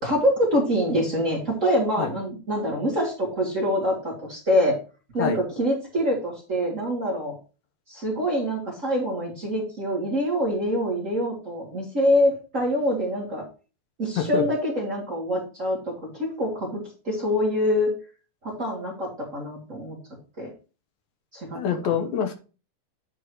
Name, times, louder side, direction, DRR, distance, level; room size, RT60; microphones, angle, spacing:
voice 1, 0.0-4.8 5.1-7.3 7.9-13.4 14.0-17.9 18.4-20.0 20.4-20.5 21.3-22.0, equal, 30° right, -2 dB, 1.7 m, -25 dB
voice 2, 21.6-22.3, left 7 dB, 75° left, 7 dB, 2.2 m, -25 dB
9.6 x 3.8 x 4.5 m, 0.34 s
omnidirectional pair, 3.5 m